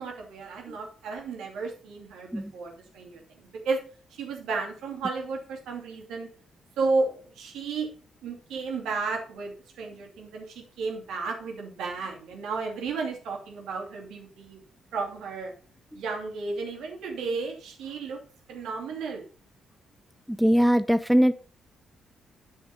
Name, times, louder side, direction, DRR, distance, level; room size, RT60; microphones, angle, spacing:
voice 1, 0.0-3.8 4.1-6.3 6.8-7.9 8.2-14.6 14.9-15.5 15.9-18.2 18.5-19.2, right 4 dB, 60° right, 1 dB, 2.7 m, -33 dB
voice 2, 20.3-21.3, equal, ahead, 13 dB, 0.6 m, -21 dB
10.5 x 6.3 x 5.6 m, 0.41 s
figure-of-eight pair, 40°, 0 cm